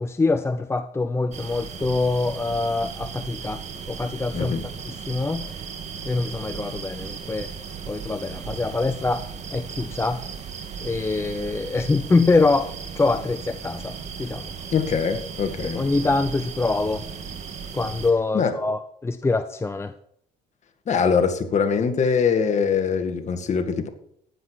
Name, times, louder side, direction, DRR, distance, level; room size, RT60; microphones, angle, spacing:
voice 1, 0.0-3.6 3.9-4.5 4.9-5.5 6.0-7.5 7.9-10.2 10.8-14.5 15.8-17.0 17.7-19.9, left 3 dB, 15° left, 9 dB, 0.6 m, -24 dB
sound 1, 1.3-18.1, right 6 dB, 40° right, 2.1 m, -36 dB
voice 2, 4.3-4.7 14.7-15.8 18.3-18.5 20.9-23.9, left 6 dB, 45° left, 7 dB, 2.0 m, -23 dB
15.0 x 10.0 x 4.7 m, 0.70 s
cardioid pair, 110°, 17 cm